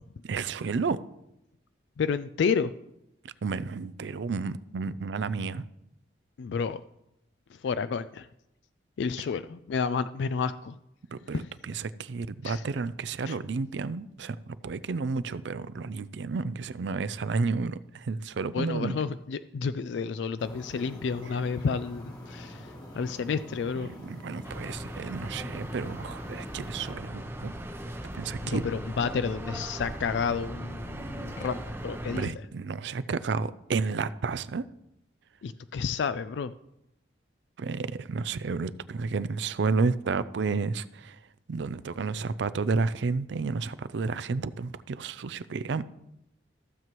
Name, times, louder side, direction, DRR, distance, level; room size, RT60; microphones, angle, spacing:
voice 1, 0.2-1.0 3.2-5.6 11.1-14.4 14.6-19.0 24.0-27.5 28.1-28.6 32.1-34.6 37.6-41.2 41.5-45.8, right 4 dB, 70° right, 0.4 m, -31 dB
voice 2, 2.0-2.7 6.4-6.8 7.5-8.3 9.0-10.8 11.3-11.5 12.4-12.6 13.3-13.4 18.5-23.9 28.4-32.3 35.4-36.5, left 5 dB, 75° left, 0.3 m, -30 dB
sound 1, 20.4-26.9, equal, 20° left, 1.3 m, -45 dB
sound 2, 24.4-32.3, right 1 dB, 15° right, 0.7 m, -38 dB
15.0 x 7.5 x 3.0 m
head